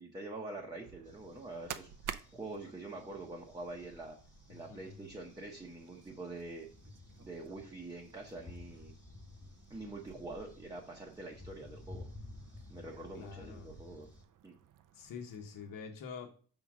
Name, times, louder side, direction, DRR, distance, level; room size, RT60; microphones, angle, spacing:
voice 1, 0.0-4.2 4.5-6.7 7.2-8.9 9.7-12.1 12.7-14.1 14.4-14.6, right 2 dB, 10° right, -1 dB, 0.9 m, -45 dB
sound 1, 0.6-15.8, right 10 dB, 55° right, 0.5 m, -53 dB
sound 2, 1.0-14.2, left 2 dB, 10° left, 1.6 m, -54 dB
voice 2, 4.5-5.1 13.1-13.7 14.9-16.3, left 6 dB, 60° left, 2 dB, 1.2 m, -46 dB
5.7 x 3.7 x 6.0 m, 0.41 s
cardioid pair, 150°, 38 cm